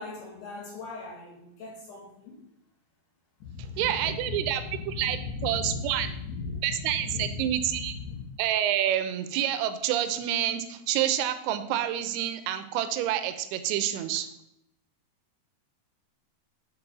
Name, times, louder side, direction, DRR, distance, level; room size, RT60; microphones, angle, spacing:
voice 1, 0.0-2.4 3.4-6.7 7.0-8.2, left 4 dB, 75° left, -6 dB, 3.9 m, -37 dB
voice 2, 3.8-6.1 6.6-7.9 8.4-14.3, right 11 dB, 80° right, 10 dB, 2.6 m, -28 dB
8.0 x 4.4 x 5.3 m, 0.79 s
omnidirectional pair, 4.7 m